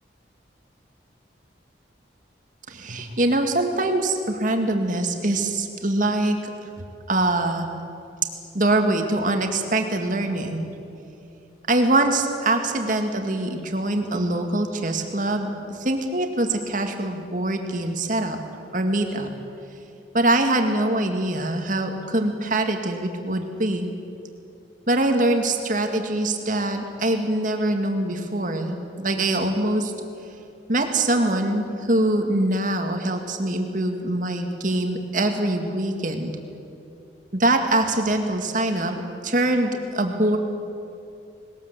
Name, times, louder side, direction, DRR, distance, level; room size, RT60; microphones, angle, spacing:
voice 1, 2.7-6.4 7.1-7.7 8.5-10.7 11.7-18.4 18.7-19.3 20.1-24.0 24.9-29.9 30.7-36.3 37.3-40.4, right 1 dB, 45° right, 4 dB, 2.1 m, -23 dB
20.5 x 19.5 x 8.2 m, 2.6 s
head